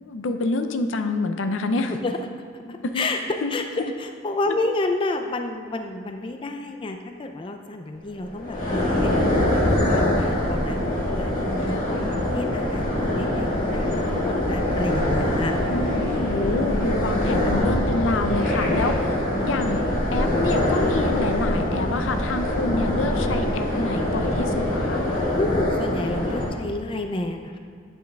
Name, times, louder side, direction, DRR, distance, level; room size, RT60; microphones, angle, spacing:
voice 1, 0.0-1.9 2.8-3.1 3.4-3.5 3.8-3.9 11.7-12.1 15.7-19.1 19.4-19.9 20.1-25.1, left 2 dB, 85° left, 8 dB, 0.5 m, -27 dB
voice 2, 2.5-3.2 3.5-10.8 11.1-15.5 16.1-16.3 17.2-17.5 18.6-19.2 25.3-27.6, left 2 dB, 25° left, 5 dB, 0.3 m, -30 dB
sound 1, 8.2-26.5, left 1 dB, 45° left, 1.6 m, -24 dB
8.7 x 8.0 x 2.3 m, 2.1 s
head